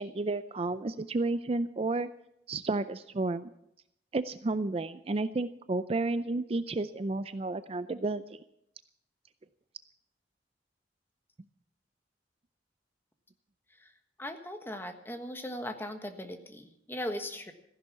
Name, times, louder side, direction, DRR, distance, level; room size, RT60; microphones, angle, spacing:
voice 1, 0.0-2.1 2.5-3.5 4.1-8.4, right 2 dB, 35° right, 13 dB, 0.4 m, -31 dB
voice 2, 14.2-17.5, left 1 dB, 15° left, 6 dB, 1.3 m, -38 dB
15.0 x 11.0 x 6.9 m, 0.77 s
head